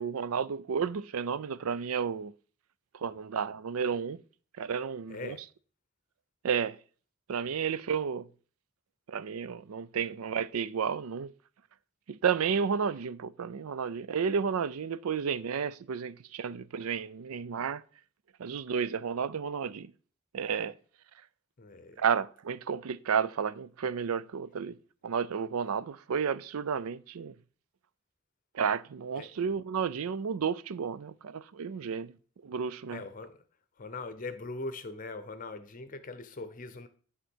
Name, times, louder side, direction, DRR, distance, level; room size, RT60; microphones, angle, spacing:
voice 1, 0.0-2.3 2.9-4.2 4.6-5.4 6.4-6.8 7.3-8.3 9.1-11.3 12.1-17.8 18.4-19.9 20.3-20.7 22.0-24.8 25.0-27.3 28.5-32.1 32.4-33.0, right 6 dB, 85° right, 0.4 m, -32 dB
voice 2, 5.1-5.4 21.6-22.0 29.2-29.3 32.9-33.4 33.8-36.9, left 3 dB, 40° left, 0.7 m, -41 dB
11.0 x 3.7 x 6.2 m
head